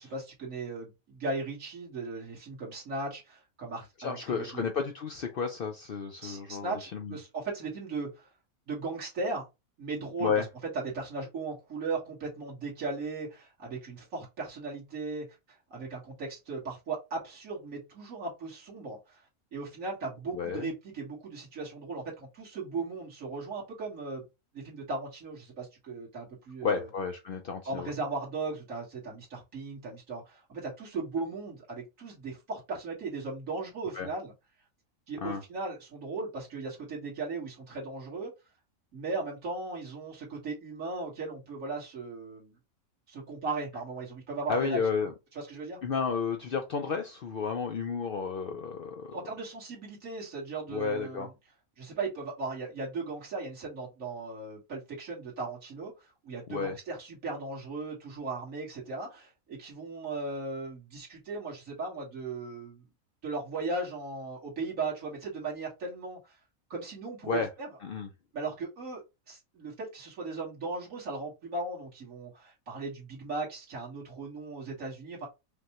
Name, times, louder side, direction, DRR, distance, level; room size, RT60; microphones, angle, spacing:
voice 1, 0.0-4.6 6.2-8.3 8.7-9.5 9.8-10.5 10.7-15.4 15.7-19.2 19.5-24.2 24.5-26.9 27.7-34.3 35.1-38.3 38.9-42.6 43.1-45.8 49.1-51.3 51.8-62.8 63.2-66.4 66.7-67.8 68.3-69.0 69.3-75.3, right 3 dB, 65° right, 2.0 m, -37 dB
voice 2, 4.0-7.1 10.2-10.4 20.3-20.7 26.6-27.9 34.0-34.1 35.2-35.4 44.5-45.1 45.8-49.2 50.7-51.3 56.5-56.8 67.3-67.5 67.8-68.1, left 5 dB, 65° left, 0.5 m, -32 dB
5.1 x 2.2 x 2.9 m
omnidirectional pair, 1.5 m